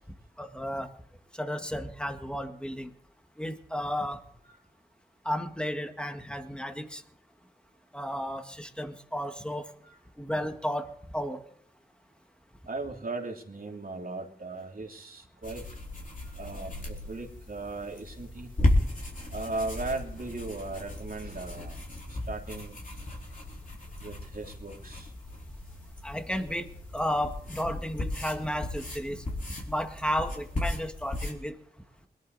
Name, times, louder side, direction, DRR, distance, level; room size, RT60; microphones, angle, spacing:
voice 1, 0.4-0.9 1.3-2.9 3.4-4.2 5.2-7.0 7.9-9.7 10.2-11.4 26.0-31.6, equal, 5° left, 6 dB, 1.8 m, -33 dB
voice 2, 12.7-15.6 16.2-18.5 19.2-21.8 22.1-22.8 24.0-25.1, right 3 dB, 55° right, 0 dB, 3.0 m, -37 dB
sound 1, 15.4-31.3, left 1 dB, 50° left, 4.2 m, -35 dB
22.0 x 11.5 x 4.1 m, 0.66 s
wide cardioid pair, 60°, 17 cm